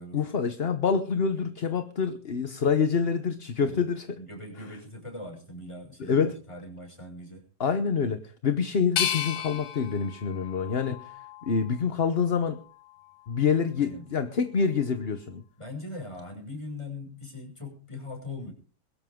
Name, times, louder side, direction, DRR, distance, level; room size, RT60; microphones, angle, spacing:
voice 1, 0.1-4.2 6.0-6.3 7.6-11.1 11.5-12.6 13.3-15.4, left 6 dB, 40° left, 1.1 m, -26 dB
voice 2, 4.2-7.4 13.8-14.1 15.6-18.5, left 2 dB, 15° left, 6.4 m, -40 dB
sound 1, 9.0-11.9 12.4-13.2, left 9 dB, 80° left, 1.8 m, -34 dB
22.5 x 13.0 x 3.8 m
omnidirectional pair, 1.8 m